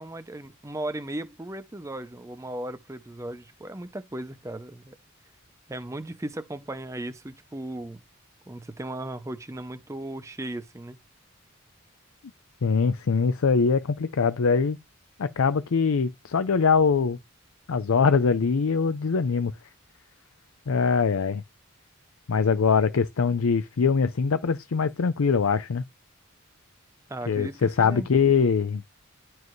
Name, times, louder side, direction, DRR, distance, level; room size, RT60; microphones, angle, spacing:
voice 1, 0.0-5.0 5.7-8.0 8.5-11.0 27.1-28.1, right 1 dB, 15° right, 0.6 m, -36 dB
voice 2, 12.6-14.8 15.2-17.2 17.7-19.5 20.7-21.4 22.3-25.8 27.3-28.9, left 5 dB, 80° left, 0.5 m, -23 dB
11.0 x 4.6 x 3.1 m
head